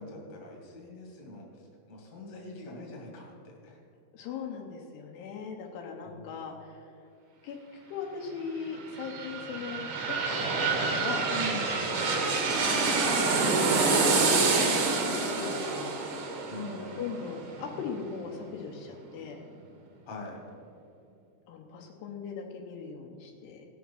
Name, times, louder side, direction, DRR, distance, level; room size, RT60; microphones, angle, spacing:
voice 1, 0.0-1.5 1.9-3.8 6.0-6.3 11.3-11.8 16.5-16.8 20.1-20.4, left 1 dB, 45° left, -1 dB, 3.4 m, -42 dB
voice 2, 4.1-6.9 7.4-7.6 7.9-9.9 10.3-10.7 11.0-11.3 12.0-13.0 13.5-16.2 16.6-19.4 21.5-23.7, left 5 dB, 85° left, 1 dB, 3.1 m, -39 dB
sound 1, 8.7-18.4 18.8-18.9, right 4 dB, 75° right, 1.3 m, -27 dB
18.0 x 6.1 x 5.8 m, 2.5 s
omnidirectional pair, 4.7 m